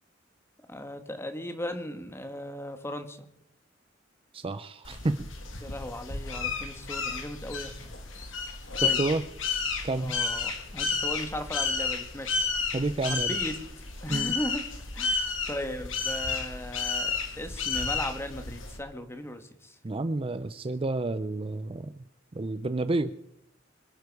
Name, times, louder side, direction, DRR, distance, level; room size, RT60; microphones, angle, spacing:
voice 1, 0.7-3.3 5.6-7.8 8.8-9.0 10.0-12.7 13.0-13.6 14.0-14.6 14.9-19.8, left 1 dB, 15° left, 7 dB, 1.6 m, -37 dB
voice 2, 4.3-5.3 8.7-9.2 9.8-10.1 12.7-13.3 14.1-14.3 19.8-21.9 22.3-23.1, right 2 dB, 30° right, 12 dB, 0.5 m, -30 dB
sound 1, 4.8-18.8, left 5 dB, 85° left, 2.5 m, -32 dB
27.0 x 9.4 x 4.8 m, 0.79 s
head